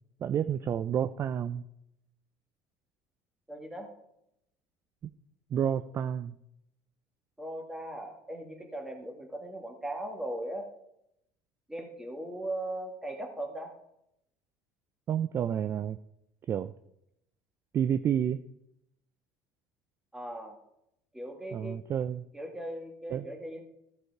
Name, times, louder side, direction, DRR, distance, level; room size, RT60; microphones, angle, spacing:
voice 1, 0.2-1.6 5.5-6.4 15.1-16.0 16.5-16.7 17.7-18.4 21.5-22.2 23.1-23.2, right 9 dB, 35° right, 13 dB, 0.3 m, -29 dB
voice 2, 3.5-3.9 7.4-10.7 11.7-13.7 20.1-20.6 21.1-21.8 22.3-23.6, right 1 dB, 5° right, 2 dB, 1.6 m, -38 dB
14.0 x 4.8 x 4.6 m, 0.81 s
supercardioid pair, 110°, 7 cm